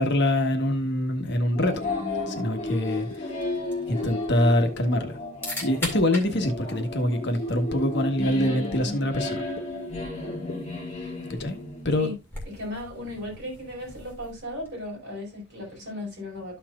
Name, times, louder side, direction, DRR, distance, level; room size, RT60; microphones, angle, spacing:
voice 1, 0.0-1.9 2.3-3.1 3.9-5.2 5.6-9.4 11.4-11.6 11.8-12.1, left 1 dB, 50° left, 1.2 m, -24 dB
sound 1, 1.5-12.1, left 2 dB, 30° left, 2.8 m, -33 dB
sound 2, 3.0-14.9, left 1 dB, 10° left, 2.2 m, -43 dB
sound 3, 3.1-3.2 4.0-4.1 4.9-5.0 5.9-6.0 6.8-6.9 7.7-7.8 8.6-8.7 9.6-9.7 10.5-10.6 11.4-11.5, left 3 dB, 75° left, 0.9 m, -38 dB
voice 2, 12.4-16.6, left 1 dB, 50° right, 5.0 m, -36 dB
13.0 x 5.8 x 2.4 m
head